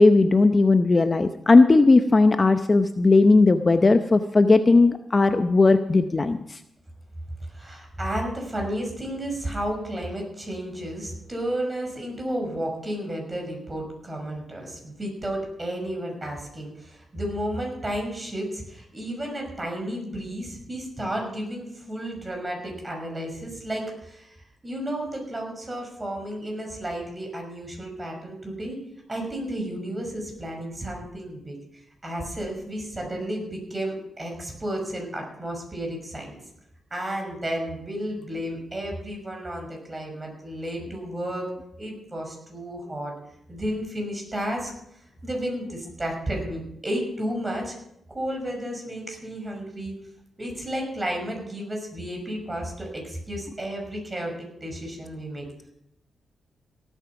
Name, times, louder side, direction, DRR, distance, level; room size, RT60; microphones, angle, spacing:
voice 1, 0.0-6.6, left 3 dB, 30° left, 9 dB, 0.7 m, -17 dB
voice 2, 7.5-24.3 24.6-28.8 29.1-31.6 32.0-36.3 36.9-41.5 41.8-43.1 43.5-44.7 45.2-47.7 48.1-49.9 50.4-54.3 54.6-55.4, right 1 dB, 25° right, 1 dB, 6.0 m, -32 dB
17.5 x 9.1 x 6.0 m, 0.79 s
cardioid pair, 90°, 0 cm